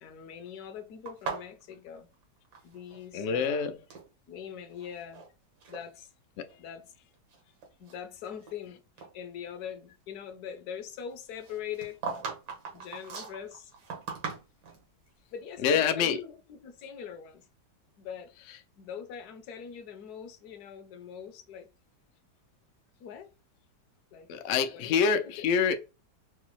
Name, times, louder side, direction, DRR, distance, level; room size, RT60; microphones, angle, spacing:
voice 1, 0.0-2.1 2.6-3.8 4.3-5.2 5.7-6.1 6.6-6.9 7.8-8.8 9.1-12.0 12.7-13.7 15.3-17.4 18.0-18.3 18.8-21.7 23.0-23.3 24.1-24.3 24.7-25.1 25.4-25.5, left 8 dB, 70° left, 1.1 m, -42 dB
sound 1, 1.1-3.1 3.3-4.1 4.7-5.3 5.6-5.8 6.5-6.6 7.1-8.7 9.0-9.1 11.4-14.8, right 5 dB, 85° right, 1.8 m, -40 dB
voice 2, 3.1-3.7 15.6-16.2 24.3-25.8, left 6 dB, 90° left, 0.6 m, -26 dB
4.9 x 2.0 x 3.0 m
omnidirectional pair, 1.9 m